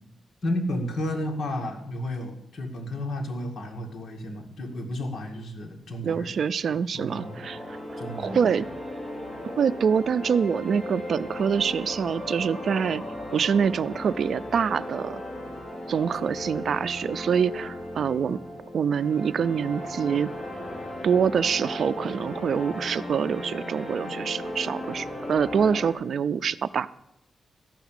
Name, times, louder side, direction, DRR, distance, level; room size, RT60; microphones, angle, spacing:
voice 1, 0.4-6.4 6.9-7.4 8.0-8.6, left 1 dB, 60° left, 4 dB, 2.1 m, -32 dB
voice 2, 6.0-7.6 8.2-8.6 9.4-13.0 13.3-15.2 15.9-18.4 18.7-20.3 21.0-26.9, right 7 dB, 65° right, 15 dB, 0.4 m, -25 dB
sound 1, 7.1-25.9, left 1 dB, 25° left, 3.2 m, -36 dB
13.5 x 5.9 x 9.0 m, 0.82 s
cardioid pair, 110°, 0 cm